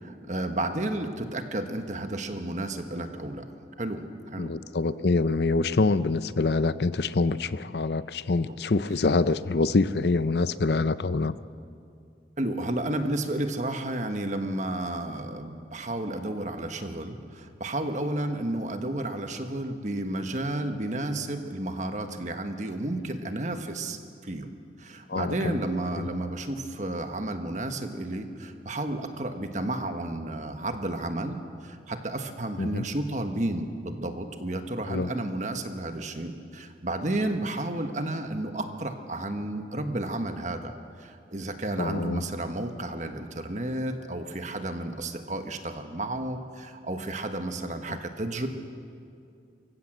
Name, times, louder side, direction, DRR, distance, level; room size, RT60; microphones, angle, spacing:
voice 1, 0.0-3.4 3.8-4.5 8.5-8.6 12.4-24.5 24.8-40.7 41.0-48.5, right 1 dB, 40° right, 6 dB, 1.4 m, -32 dB
voice 2, 4.4-11.3 25.1-25.6 26.0-26.1 32.6-32.8 34.9-35.1 41.8-42.2 47.9-48.0, left 3 dB, 65° left, 14 dB, 0.6 m, -25 dB
24.5 x 15.5 x 7.9 m, 2.4 s
head